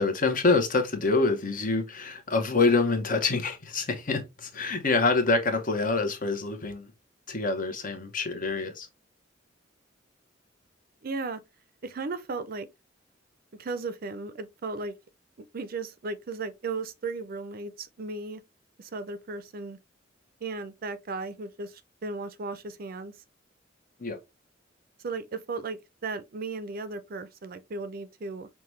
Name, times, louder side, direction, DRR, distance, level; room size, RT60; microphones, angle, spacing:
voice 1, 0.0-6.9 7.3-8.9 24.0-24.2, left 3 dB, 45° left, 1.0 m, -26 dB
voice 2, 11.0-11.4 11.8-12.7 13.6-14.9 15.5-18.4 18.8-19.8 20.4-23.1 25.0-28.5, right 3 dB, 50° right, 0.5 m, -35 dB
5.7 x 2.3 x 3.1 m
head